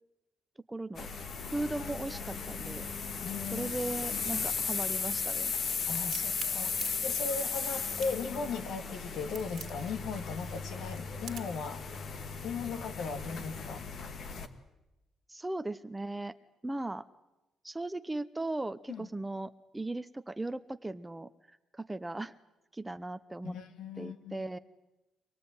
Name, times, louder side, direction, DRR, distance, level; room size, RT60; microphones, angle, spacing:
voice 1, 0.7-1.1 1.5-2.9 3.5-5.5 15.3-16.4 16.6-17.1 17.6-22.3 22.7-23.6 24.0-24.6, right 2 dB, 15° right, 12 dB, 0.8 m, -37 dB
sound 1, 0.9-14.5, left 5 dB, 55° left, 1.9 m, -36 dB
voice 2, 3.2-3.8 4.1-4.5 5.9-11.8 12.4-13.8 18.9-19.1 23.4-24.5, left 5 dB, 80° left, 8 dB, 1.9 m, -38 dB
Crack, 5.9-11.6, right 8 dB, 60° right, 2.2 m, -46 dB
25.5 x 19.0 x 9.4 m, 0.99 s
cardioid pair, 90°, 0 cm